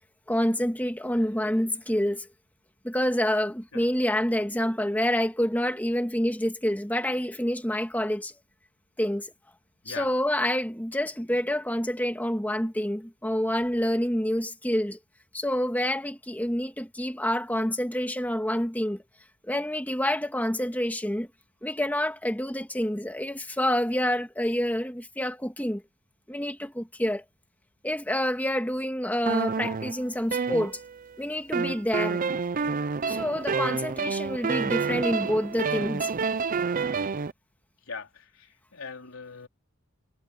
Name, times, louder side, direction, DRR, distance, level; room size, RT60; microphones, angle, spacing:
voice 1, 0.3-2.3 2.8-8.3 9.0-9.3 9.9-15.0 15.3-19.0 19.5-21.3 21.6-25.8 26.3-27.2 27.8-30.8 31.2-32.2 33.1-36.1, equal, 10° left, 2.2 m, -27 dB
sound 1, 29.3-31.1 31.5-37.3, right 5 dB, 40° right, 0.5 m, -28 dB
voice 2, 37.9-39.5, left 5 dB, 80° left, 3.9 m, -40 dB
head